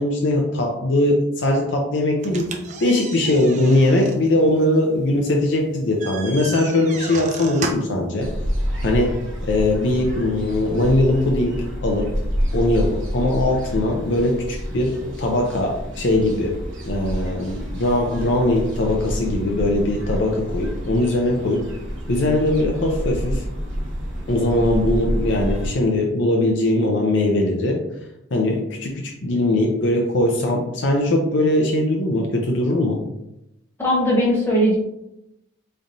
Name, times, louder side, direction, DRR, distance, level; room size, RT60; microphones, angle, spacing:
voice 1, 0.0-2.5 2.8-8.3 8.8-12.1 12.5-16.6 16.8-21.7 22.1-23.4 24.3-27.8 28.3-33.0, left 1 dB, 60° left, 1 dB, 0.5 m, -20 dB
sound 1, 2.2-8.1, right 4 dB, 35° right, 0.3 m, -34 dB
sound 2, 8.2-25.7, equal, 65° right, 1.0 m, -28 dB
voice 2, 33.8-34.7, equal, 10° left, -6 dB, 1.1 m, -18 dB
4.0 x 3.2 x 2.5 m, 0.84 s
head